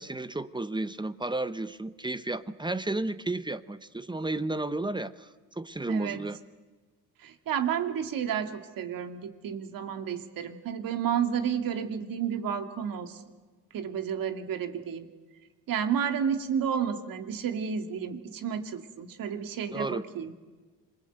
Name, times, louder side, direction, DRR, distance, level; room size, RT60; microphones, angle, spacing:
voice 1, 0.0-6.4 19.7-20.0, right 2 dB, 10° right, 13 dB, 1.0 m, -33 dB
voice 2, 5.9-6.2 7.2-13.2 13.7-15.1 15.7-20.3, right 8 dB, 65° right, 6 dB, 2.4 m, -31 dB
26.5 x 20.5 x 8.1 m, 1.3 s
cardioid pair, 85°, 36 cm